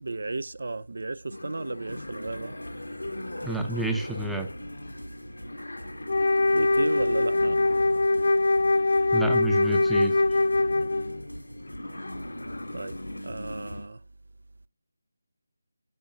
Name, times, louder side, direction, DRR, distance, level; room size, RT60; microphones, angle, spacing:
voice 1, 0.0-2.6 6.5-7.6 12.7-14.0, right 3 dB, 55° right, 0.4 m, -34 dB
sound 1, 1.3-13.9, left 1 dB, 75° left, 1.0 m, -41 dB
sound 2, 1.9-13.8, equal, 90° left, 2.1 m, -42 dB
voice 2, 3.4-4.5 9.1-10.2, right 2 dB, ahead, 0.6 m, -29 dB
Wind instrument woodwind instrument, 6.1-11.2, left 2 dB, 45° left, 0.5 m, -23 dB
12.0 x 5.3 x 2.6 m
figure-of-eight pair, 155°, 0 cm